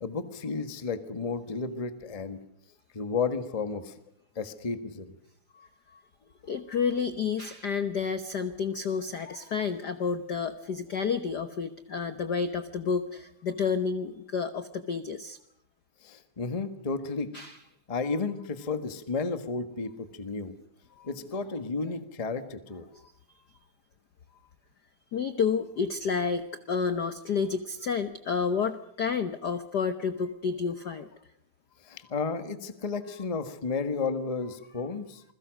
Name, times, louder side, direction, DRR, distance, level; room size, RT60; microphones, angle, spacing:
voice 1, 0.0-2.4 2.9-4.0 4.3-5.1 16.0-17.3 17.9-20.6 21.0-22.8 31.8-35.2, left 4 dB, 25° left, 9 dB, 0.8 m, -32 dB
voice 2, 5.5-6.0 6.4-15.4 17.3-17.6 20.9-21.1 22.9-23.0 25.1-31.1, left 5 dB, 65° left, 10 dB, 1.0 m, -30 dB
28.0 x 21.5 x 6.4 m, 0.71 s
omnidirectional pair, 3.3 m